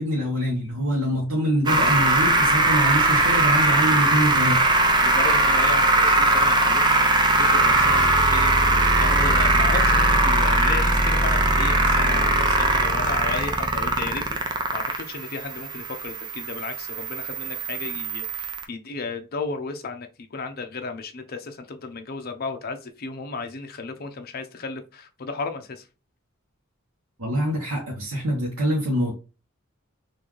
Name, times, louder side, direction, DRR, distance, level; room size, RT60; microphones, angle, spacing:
voice 1, 0.0-4.6 27.2-29.1, equal, 85° right, 1.0 m, -25 dB
sound 1, 1.7-18.6, right 2 dB, 20° right, 0.4 m, -20 dB
voice 2, 5.0-25.8, left 4 dB, 45° left, 0.6 m, -34 dB
3.8 x 2.5 x 3.1 m
head